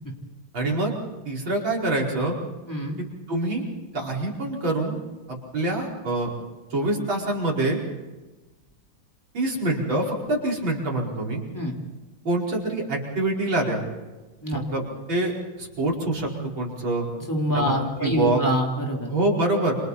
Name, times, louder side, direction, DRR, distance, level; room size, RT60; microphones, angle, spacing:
voice 1, 0.5-0.9 1.3-2.3 3.3-3.6 3.9-5.0 5.3-6.3 6.7-7.8 9.3-11.4 12.2-13.8 14.5-15.3 15.6-16.3 16.6-17.1 17.5-17.7 18.0-18.4 19.1-19.8, right 2 dB, 85° right, -3 dB, 5.7 m, -25 dB
voice 2, 2.7-3.0 11.5-11.7 14.4-14.6 17.3-19.1, equal, 10° left, -1 dB, 3.6 m, -25 dB
28.5 x 27.5 x 4.2 m, 1.2 s
omnidirectional pair, 2.1 m